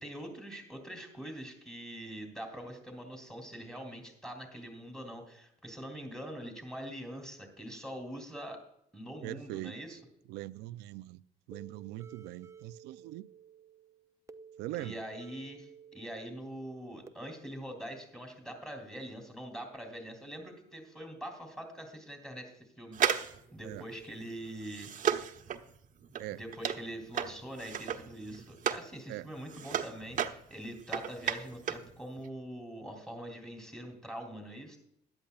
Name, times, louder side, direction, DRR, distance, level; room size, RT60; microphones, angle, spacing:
voice 1, 0.0-8.6 8.9-10.0 14.8-24.9 26.4-34.8, right 1 dB, 5° left, 3.3 m, -44 dB
voice 2, 9.2-9.7 10.3-11.2 11.5-13.3 14.6-15.0 23.6-23.8 26.2-26.4 29.1-29.3, right 16 dB, 90° right, 0.5 m, -41 dB
sound 1, 11.5-17.1, right 7 dB, 15° right, 0.6 m, -54 dB
sound 2, 22.9-28.9 29.2-31.9 32.2-32.3, right 8 dB, 50° right, 1.1 m, -34 dB
16.5 x 11.5 x 2.4 m
cardioid pair, 110°, 17 cm